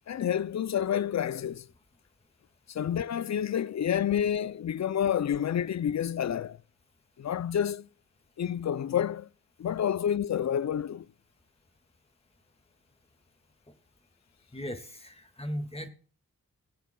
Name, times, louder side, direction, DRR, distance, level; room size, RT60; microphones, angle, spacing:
voice 1, 0.1-1.7 2.7-6.6 7.2-7.9 8.4-9.3 9.6-11.1, left 9 dB, 50° left, 0.5 m, -29 dB
voice 2, 14.5-15.9, equal, 15° left, 1.9 m, -37 dB
19.0 x 8.2 x 2.3 m
cardioid pair, 45°, 36 cm